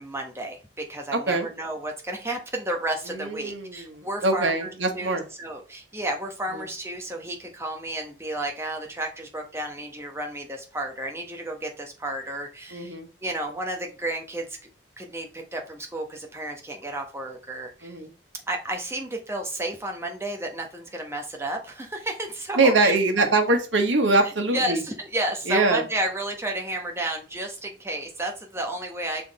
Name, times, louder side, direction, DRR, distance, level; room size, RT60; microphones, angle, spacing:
voice 1, 0.0-14.6 15.0-18.0 18.5-23.0 24.2-29.3, right 1 dB, 15° right, 2 dB, 1.2 m, -32 dB
voice 2, 1.1-1.5 3.1-5.2 6.5-6.6 12.7-13.1 17.8-18.1 22.6-24.8 25.5-25.8, right 2 dB, 85° right, 4 dB, 1.4 m, -23 dB
5.9 x 4.2 x 4.2 m, 0.35 s
head